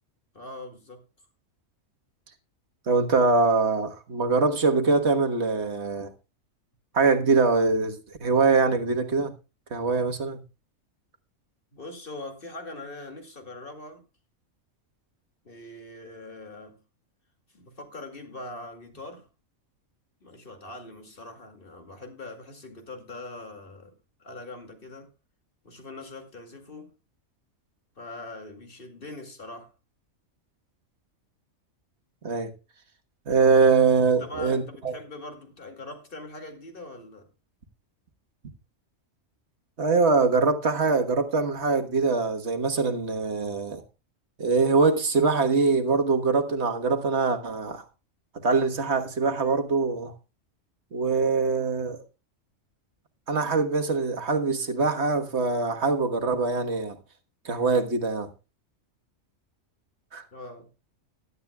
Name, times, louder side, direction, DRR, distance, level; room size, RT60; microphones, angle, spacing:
voice 1, 0.3-1.0 11.7-14.0 15.4-16.8 17.5-19.3 20.2-25.1 25.6-26.9 28.0-29.7 34.2-37.3 60.3-60.7, left 2 dB, 45° left, 2.4 m, -42 dB
voice 2, 2.9-6.1 6.9-9.3 9.7-10.4 32.2-32.5 33.3-34.9 39.8-43.8 44.4-47.8 48.3-50.1 50.9-52.0 53.3-57.0 57.4-58.3 60.1-60.2, right 4 dB, 55° right, 1.6 m, -23 dB
16.5 x 11.5 x 2.3 m
omnidirectional pair, 1.3 m